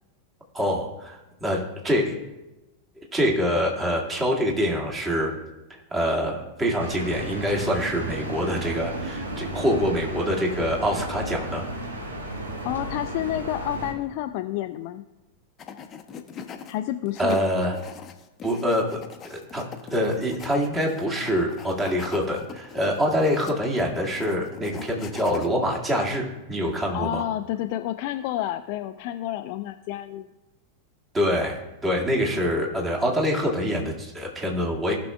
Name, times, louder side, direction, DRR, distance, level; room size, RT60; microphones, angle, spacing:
voice 1, 0.5-2.2 3.1-5.3 5.7-11.7 17.2-17.8 18.4-19.7 19.9-27.2 31.1-34.9, equal, 15° right, -2 dB, 2.0 m, -25 dB
sound 1, 6.8-13.9, right 1 dB, 70° right, 1.3 m, -33 dB
voice 2, 12.6-15.0 16.7-17.4 26.6-30.3, left 13 dB, 45° left, 8 dB, 0.3 m, -30 dB
sound 2, 15.6-16.7 17.1-25.5, left 7 dB, 25° left, 0.8 m, -41 dB
17.5 x 6.0 x 2.3 m, 1.1 s
figure-of-eight pair, 90°, 0 cm